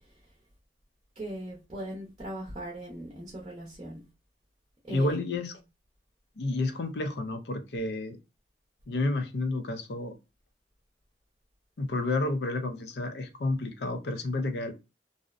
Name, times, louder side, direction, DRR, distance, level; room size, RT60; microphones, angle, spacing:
voice 1, 1.1-4.0 4.8-5.2, right 1 dB, 25° right, 0.6 m, -39 dB
voice 2, 4.9-5.5 6.4-8.2 8.9-10.2 11.8-14.7, left 2 dB, 70° left, 0.5 m, -30 dB
2.6 x 2.0 x 2.4 m
head